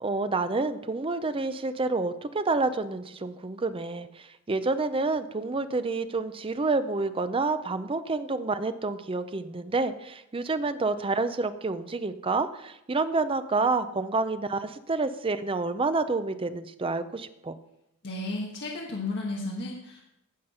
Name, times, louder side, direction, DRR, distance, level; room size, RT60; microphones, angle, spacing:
voice 1, 0.0-17.5, right 3 dB, 25° right, 11 dB, 0.5 m, -28 dB
voice 2, 18.0-20.0, left 2 dB, 50° left, -2 dB, 1.4 m, -33 dB
15.5 x 5.2 x 5.5 m, 0.84 s
head